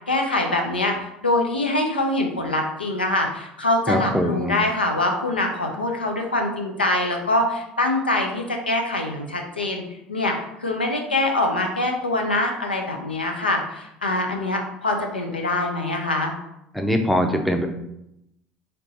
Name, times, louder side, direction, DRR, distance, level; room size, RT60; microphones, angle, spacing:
voice 1, 0.1-9.8 10.1-16.3, left 2 dB, 85° left, 3 dB, 0.5 m, -24 dB
voice 2, 3.9-4.5 16.7-17.7, equal, ahead, 4 dB, 0.6 m, -22 dB
3.3 x 2.8 x 3.8 m, 0.82 s
figure-of-eight pair, 60°, 5 cm